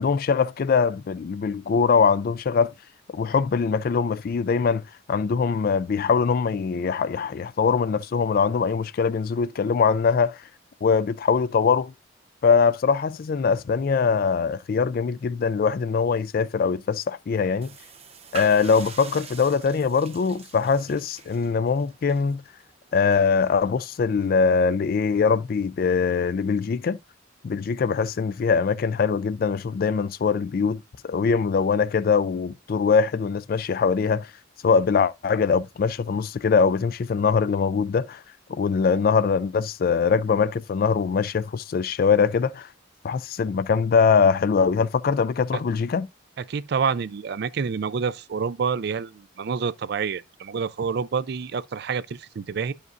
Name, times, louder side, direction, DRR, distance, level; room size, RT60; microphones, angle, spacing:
voice 1, 0.0-2.7 3.1-4.8 5.1-10.4 10.8-11.9 12.4-17.7 18.3-22.4 22.9-27.0 27.4-34.3 34.6-38.2 38.5-42.7 43.0-46.1, left 5 dB, 45° left, 0.3 m, -22 dB
sound 1, 17.6-24.3, right 5 dB, 30° right, 0.7 m, -44 dB
voice 2, 46.4-52.7, right 6 dB, 55° right, 0.4 m, -28 dB
11.0 x 5.1 x 2.5 m
head